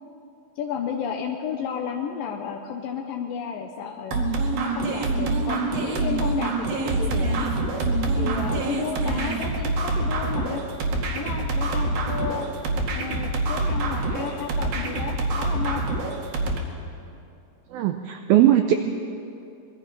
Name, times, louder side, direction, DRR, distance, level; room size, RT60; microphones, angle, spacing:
voice 1, 0.6-4.3 4.6-7.5 8.2-10.6 11.1-12.5 12.9-15.8, left 7 dB, 70° left, 2 dB, 2.2 m, -32 dB
sound 1, 4.1-16.6, right 2 dB, 60° right, 3.5 m, -26 dB
voice 2, 17.7-18.7, right 12 dB, 85° right, 6 dB, 2.1 m, -19 dB
25.5 x 21.5 x 5.6 m, 2.6 s
omnidirectional pair, 5.2 m